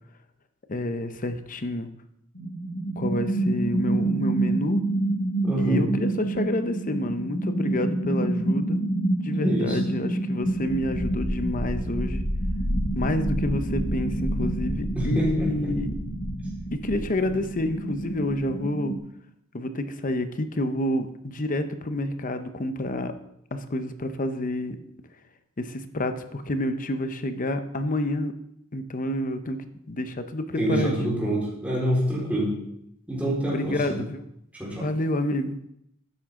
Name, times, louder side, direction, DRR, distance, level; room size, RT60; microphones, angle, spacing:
voice 1, 0.7-1.9 3.0-4.8 5.6-8.8 9.2-12.2 12.9-15.9 16.7-18.9 19.5-23.1 23.5-24.8 25.6-28.3 28.7-31.2 33.5-34.2 34.8-35.7, left 1 dB, 40° left, 9 dB, 0.8 m, -28 dB
sound 1, 2.3-19.0, right 1 dB, 65° left, 2.4 m, -27 dB
voice 2, 5.4-5.8 9.4-9.8 15.0-15.5 30.6-32.5 33.1-34.0 34.6-34.8, right 1 dB, 5° right, -6 dB, 4.3 m, -26 dB
12.0 x 9.8 x 3.7 m, 0.76 s
head